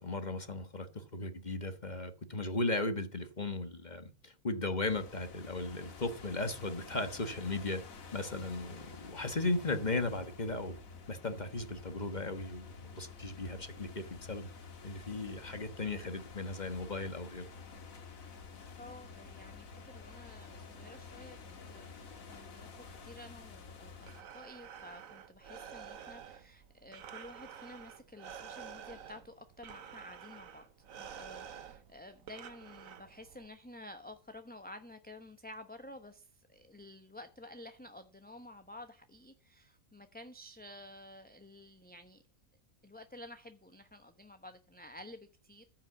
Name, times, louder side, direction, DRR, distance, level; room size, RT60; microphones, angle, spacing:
voice 1, 0.0-7.8 8.1-10.8 11.1-14.5 14.8-17.4, left 2 dB, 30° left, 1.4 m, -36 dB
sound 1, 4.9-24.2, left 5 dB, 70° left, 1.9 m, -50 dB
voice 2, 18.8-30.6 31.0-42.2 42.8-45.7, left 1 dB, 10° left, 0.7 m, -52 dB
Breathing, 23.8-33.5, right 8 dB, 70° right, 1.4 m, -50 dB
15.0 x 5.7 x 7.1 m
omnidirectional pair, 1.5 m